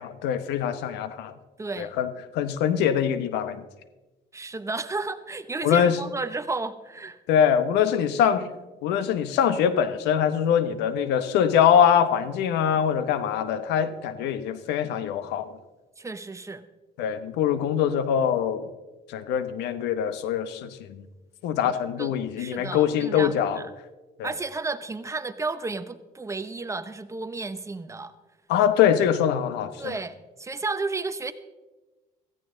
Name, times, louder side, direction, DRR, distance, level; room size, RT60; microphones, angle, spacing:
voice 1, 0.0-1.3 1.8-2.1 2.3-3.6 5.6-6.0 7.3-8.5 8.8-15.5 17.0-18.7 19.1-21.0 21.4-23.6 24.2-24.3 28.5-30.0, left 8 dB, 90° left, 12 dB, 1.0 m, -23 dB
voice 2, 1.6-1.9 4.3-7.2 16.0-16.7 21.6-21.7 22.0-23.6 24.2-28.1 29.8-31.3, right 3 dB, 15° right, 12 dB, 0.8 m, -32 dB
16.5 x 14.5 x 3.8 m, 1.1 s
cardioid pair, 110°, 17 cm